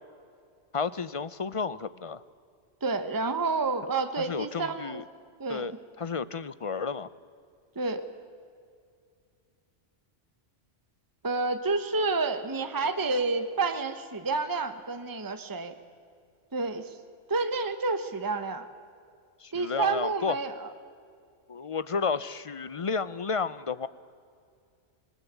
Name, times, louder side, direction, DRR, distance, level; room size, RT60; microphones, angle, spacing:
voice 1, 0.7-2.2 4.2-5.0 5.5-5.7 6.0-7.1 19.4-20.4 21.5-23.9, left 5 dB, 40° left, 16 dB, 0.5 m, -32 dB
voice 2, 2.8-5.0 5.4-5.7 7.7-8.0 11.2-15.7 16.5-17.0 17.3-18.6 19.5-20.7, right 3 dB, 20° right, 9 dB, 1.1 m, -29 dB
26.5 x 20.0 x 8.2 m, 2.3 s
omnidirectional pair, 1.3 m